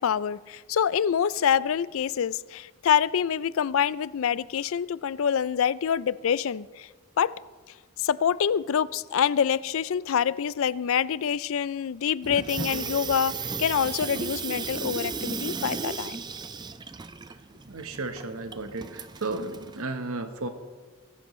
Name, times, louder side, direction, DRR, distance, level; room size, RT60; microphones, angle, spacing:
voice 1, 0.0-6.9 7.2-7.4 8.0-16.2, left 8 dB, 65° left, 19 dB, 0.4 m, -26 dB
Water tap faucet / Sink (filling or washing), 12.2-19.8, right 5 dB, 20° right, 0.4 m, -35 dB
voice 2, 17.7-20.5, right 3 dB, 75° right, 7 dB, 1.1 m, -34 dB
23.0 x 11.5 x 3.2 m, 1.4 s
head